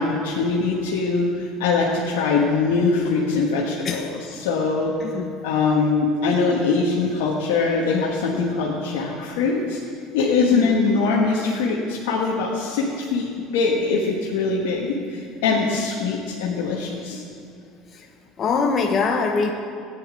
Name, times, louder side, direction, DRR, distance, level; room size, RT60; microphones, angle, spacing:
voice 1, 0.0-4.9 5.4-9.8 10.1-17.2, left 4 dB, 80° left, -3 dB, 1.3 m, -22 dB
voice 2, 5.0-5.3 10.5-10.8 18.4-19.5, left 4 dB, 40° left, 2 dB, 0.9 m, -23 dB
16.0 x 9.5 x 3.8 m, 2.4 s
hypercardioid pair, 85°, 0 cm